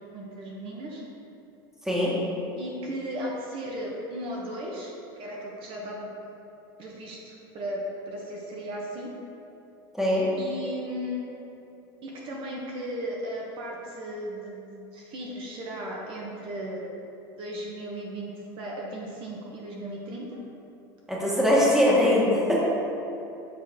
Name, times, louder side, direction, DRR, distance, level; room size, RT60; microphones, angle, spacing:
voice 1, 0.1-1.0 2.6-6.1 6.8-9.1 10.4-11.3 12.0-16.8 17.4-18.3 18.6-20.4, equal, 50° right, -3 dB, 1.1 m, -36 dB
voice 2, 1.8-2.2 10.0-10.3 21.1-22.6, left 1 dB, 5° right, -6 dB, 1.3 m, -22 dB
7.1 x 4.0 x 3.6 m, 2.8 s
supercardioid pair, 120°, 12 cm